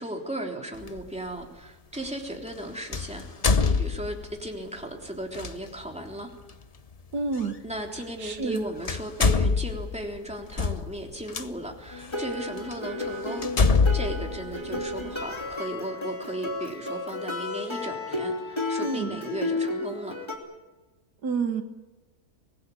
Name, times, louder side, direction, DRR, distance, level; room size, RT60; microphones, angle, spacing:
voice 1, 0.0-3.2 3.6-6.3 7.6-20.1, right 1 dB, 5° right, 1 dB, 3.3 m, -36 dB
sound 1, 0.8-1.0 2.9-4.4 5.3-5.5 7.4-7.5 8.4-8.6 8.8-11.4 12.1-12.2 12.7-12.8 13.4-15.2, left 4 dB, 40° left, 0.6 m, -24 dB
voice 2, 7.1-7.6 8.2-8.6 18.8-19.2 21.2-21.6, right 4 dB, 80° right, 7 dB, 2.0 m, -28 dB
sound 2, 11.9-20.4, left 2 dB, 15° left, 3.0 m, -33 dB
24.5 x 20.0 x 8.4 m, 1.1 s
omnidirectional pair, 1.7 m